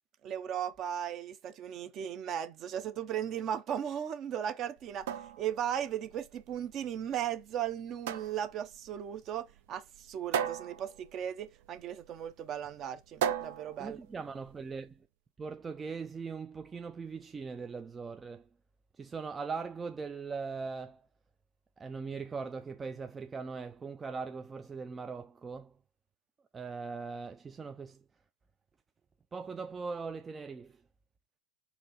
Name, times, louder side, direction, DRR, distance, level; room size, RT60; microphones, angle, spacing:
voice 1, 0.2-5.1 5.4-14.0, right 9 dB, 40° right, 0.7 m, -36 dB
sound 1, 4.8-14.8, right 9 dB, 75° right, 0.5 m, -39 dB
voice 2, 13.8-15.1 15.4-18.5 18.9-21.1 21.8-25.8 26.5-28.0 29.3-30.8, right 5 dB, 20° right, 0.3 m, -40 dB
4.2 x 2.7 x 4.0 m
supercardioid pair, 120°, 0 cm